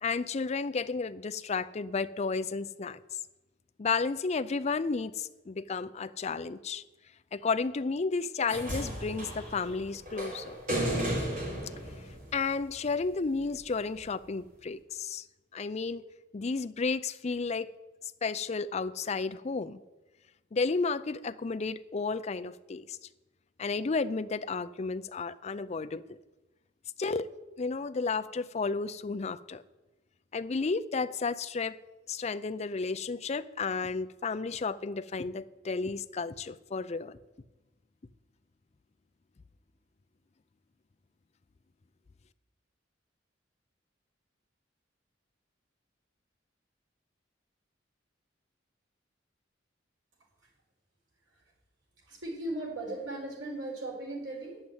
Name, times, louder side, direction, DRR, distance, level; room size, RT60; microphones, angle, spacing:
voice 1, 0.0-3.0 3.8-6.8 7.3-10.6 12.3-15.2 15.5-16.0 16.3-17.7 18.2-19.8 20.5-23.0 23.6-26.2 27.0-27.3 27.6-29.6 30.3-31.8 32.1-37.2, left 4 dB, 35° left, 11 dB, 0.4 m, -32 dB
sound 1, 8.5-12.9 14.0-14.1, right 1 dB, 45° right, 3.9 m, -34 dB
voice 2, 52.0-54.6, right 2 dB, 90° right, -2 dB, 4.7 m, -38 dB
10.5 x 7.9 x 8.8 m, 1.1 s
head